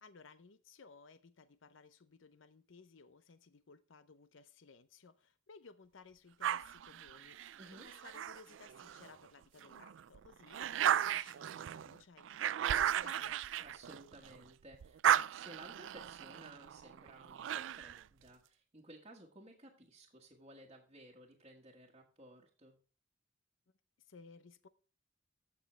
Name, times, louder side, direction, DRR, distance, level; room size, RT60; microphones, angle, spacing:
voice 1, 0.0-13.4 24.0-24.7, left 4 dB, 75° left, 0.7 m, -59 dB
sound 1, 6.4-9.1 9.6-14.4 14.7-18.0, right 10 dB, 70° right, 0.3 m, -35 dB
voice 2, 13.6-22.8, right 2 dB, 30° right, 1.5 m, -56 dB
15.0 x 6.2 x 3.2 m
head